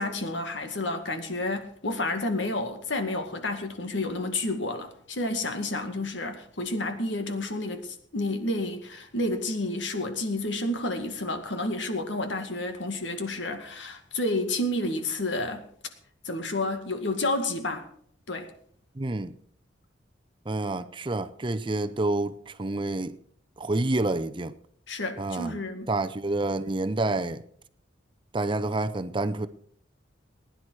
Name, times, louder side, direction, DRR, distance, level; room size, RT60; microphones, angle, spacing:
voice 1, 0.0-15.7 16.2-17.9 18.3-18.5 24.9-25.9, left 2 dB, 75° left, 2.0 m, -30 dB
voice 2, 19.0-19.3 20.5-23.2 23.6-24.5 25.2-25.5 25.9-27.4 28.3-29.5, right 2 dB, 25° right, 0.6 m, -28 dB
20.0 x 10.5 x 4.8 m
head